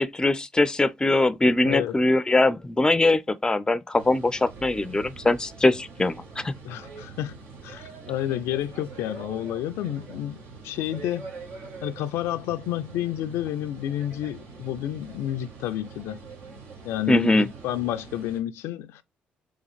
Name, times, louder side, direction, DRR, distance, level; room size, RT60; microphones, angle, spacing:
voice 1, 0.0-6.5 17.1-17.5, left 2 dB, 15° left, 0.4 m, -22 dB
voice 2, 1.6-2.0 6.6-7.3 7.6-11.3 11.8-16.2 16.8-19.0, left 12 dB, 75° left, 0.3 m, -30 dB
sound 1, 3.9-18.4, right 4 dB, 75° right, 1.4 m, -44 dB
3.5 x 3.4 x 3.5 m
supercardioid pair, 55°, 4 cm